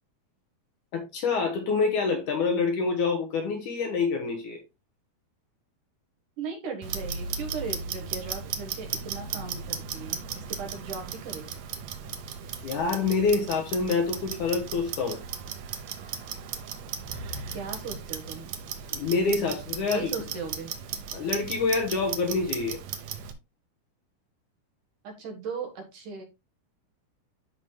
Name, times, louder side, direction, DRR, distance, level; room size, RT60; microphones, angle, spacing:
voice 1, 0.9-4.6 12.6-15.2 18.9-20.1 21.1-22.8, left 4 dB, 65° left, 2.2 m, -26 dB
voice 2, 6.4-11.5 17.5-18.5 19.9-20.7 25.0-26.2, right 5 dB, 60° right, 2.6 m, -37 dB
Clock, 6.8-23.3, right 7 dB, 80° right, 1.5 m, -36 dB
13.5 x 5.0 x 2.3 m
omnidirectional pair, 4.5 m